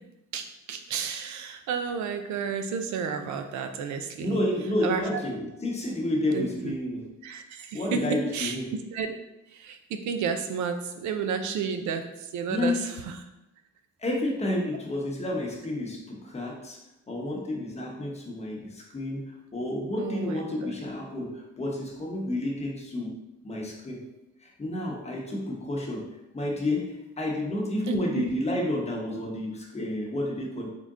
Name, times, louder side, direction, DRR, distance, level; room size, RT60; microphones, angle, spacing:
voice 1, 0.3-4.4 4.8-5.2 6.3-6.8 7.2-8.6 8.9-9.2 9.5-13.2 20.0-20.7 27.9-28.3, right 6 dB, 70° right, 7 dB, 0.5 m, -32 dB
voice 2, 4.2-7.0 7.7-8.7 12.5-12.9 14.0-16.8 17.1-23.2 23.4-24.0 24.4-30.7, left 1 dB, 20° left, -1 dB, 0.9 m, -30 dB
3.7 x 2.1 x 3.6 m, 0.91 s
cardioid pair, 90°, 30 cm